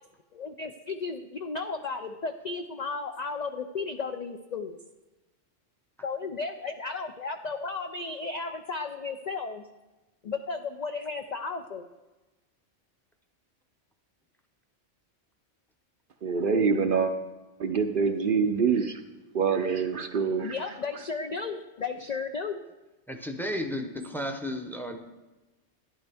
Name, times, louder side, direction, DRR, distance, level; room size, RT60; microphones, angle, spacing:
voice 1, 0.3-4.8 6.0-9.7 10.2-11.9 20.4-22.6, left 4 dB, 55° left, 6 dB, 0.4 m, -34 dB
voice 2, 16.2-17.1 17.6-19.0 19.3-20.5, right 5 dB, 55° right, 6 dB, 0.7 m, -25 dB
voice 3, 23.1-25.0, left 1 dB, ahead, 5 dB, 0.6 m, -33 dB
12.0 x 11.0 x 3.5 m, 1.1 s
omnidirectional pair, 1.3 m